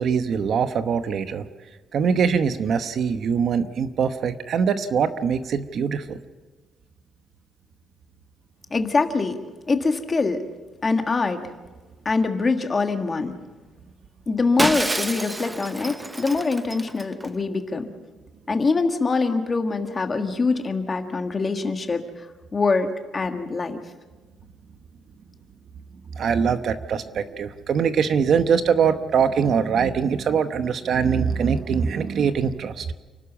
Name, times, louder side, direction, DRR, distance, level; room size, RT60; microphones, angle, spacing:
voice 1, 0.0-1.5 1.9-6.2 26.1-32.9, right 6 dB, 45° right, 10 dB, 0.9 m, -23 dB
voice 2, 8.7-9.4 9.7-10.4 10.8-11.5 12.0-13.3 14.3-17.9 18.5-22.0 22.5-23.8, left 4 dB, 20° left, 6 dB, 1.6 m, -24 dB
Shatter, 14.6-17.3, right 2 dB, 10° right, 0.6 m, -28 dB
29.0 x 12.5 x 7.3 m, 1.3 s
cardioid pair, 170°, 0 cm